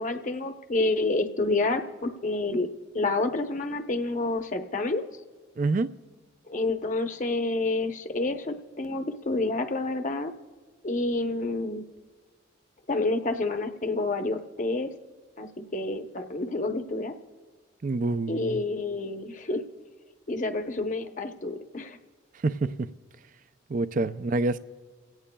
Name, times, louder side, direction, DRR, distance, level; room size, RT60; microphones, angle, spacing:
voice 1, 0.0-2.7 2.9-5.1 6.5-10.3 10.8-11.8 12.9-14.9 15.4-17.1 18.3-19.6 20.3-22.0, left 2 dB, 40° left, 0.8 m, -28 dB
voice 2, 5.6-5.9 17.8-18.6 22.4-22.9 23.7-24.6, right 3 dB, 40° right, 0.4 m, -27 dB
28.0 x 17.0 x 2.3 m
head